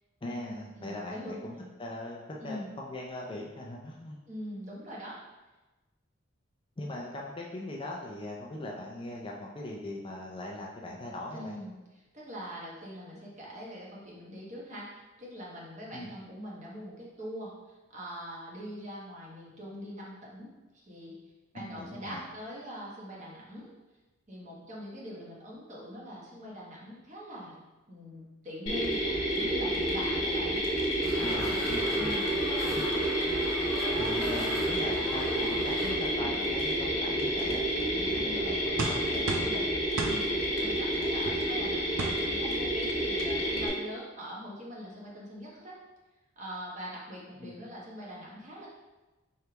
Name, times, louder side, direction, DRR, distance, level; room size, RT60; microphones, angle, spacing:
voice 1, 0.2-1.5 1.8-4.2 6.8-11.6 15.9-16.1 21.5-22.2 31.2-32.1 32.7-32.8 34.0-37.6 37.9-39.7 47.4-47.5, left 1 dB, 25° left, -2 dB, 0.4 m, -40 dB
voice 2, 0.8-1.7 2.4-2.7 4.3-5.1 11.3-11.7 12.1-21.2 21.5-23.7 24.3-27.5 27.9-30.6 31.9-32.3 38.1-38.4 39.9-45.7 46.4-48.7, equal, 35° right, -5 dB, 1.1 m, -42 dB
Mechanisms, 28.7-43.7, equal, 90° left, 1.1 m, -29 dB
sound 1, 31.0-35.9, equal, 15° right, 0.9 m, -40 dB
sound 2, 38.8-39.6 40.0-40.2 41.3-41.4 42.0-42.2 42.9-43.0 43.2-43.5, right 3 dB, 75° right, 0.5 m, -32 dB
4.7 x 3.3 x 2.9 m, 1.1 s
head